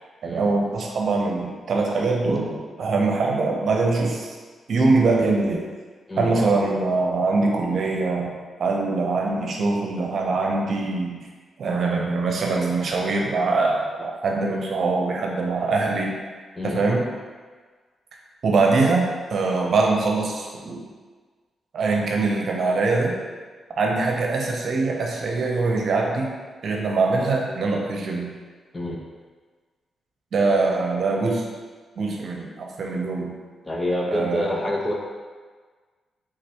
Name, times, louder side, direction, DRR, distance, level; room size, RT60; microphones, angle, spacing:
voice 1, 0.2-4.4 4.7-5.7 6.2-8.3 8.6-11.2 11.6-16.1 16.6-17.1 18.4-20.9 21.7-23.2 23.8-26.3 26.6-28.3 30.3-31.4 32.0-33.3 34.1-34.6, right 3 dB, 65° right, 0 dB, 0.7 m, -23 dB
voice 2, 33.6-34.9, left 1 dB, 20° left, -1 dB, 0.9 m, -27 dB
5.1 x 3.5 x 2.9 m, 1.5 s
cardioid pair, 60°, 0 cm